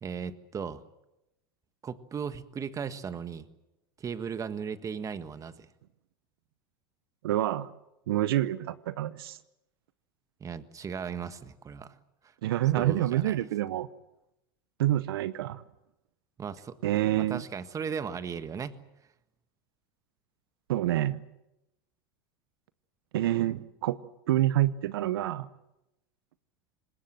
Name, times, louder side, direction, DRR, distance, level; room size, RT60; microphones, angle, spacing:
voice 1, 0.0-0.8 1.8-3.5 4.0-5.7 10.4-12.0 12.2-12.3 12.7-13.4 16.4-16.8 17.1-18.8, right 6 dB, 25° right, 11 dB, 1.6 m, -37 dB
voice 2, 7.2-7.7 8.1-9.4 12.4-13.9 14.8-15.6 16.8-17.4 20.7-21.2 23.1-24.0 24.3-25.5, right 14 dB, 80° right, 16 dB, 0.8 m, -27 dB
26.0 x 20.5 x 7.6 m, 0.90 s
hypercardioid pair, 100°, 12 cm